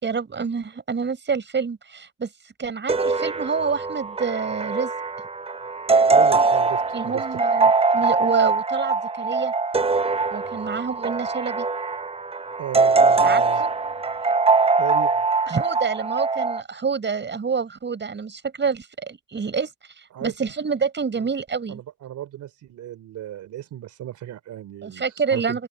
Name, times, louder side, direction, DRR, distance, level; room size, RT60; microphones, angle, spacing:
voice 1, 0.0-2.3 2.6-4.9 6.9-9.5 10.3-11.7 13.2-13.7 15.5-19.7 20.0-21.8 24.8-25.7, right 5 dB, 35° right, 5.7 m, -27 dB
sound 1, 2.9-16.6, right 4 dB, 20° right, 0.7 m, -22 dB
voice 2, 6.1-7.4 12.6-13.6 14.8-15.2 20.1-20.3 21.2-21.3 21.7-25.6, right 12 dB, 75° right, 3.2 m, -35 dB
open air
cardioid pair, 90°, 30 cm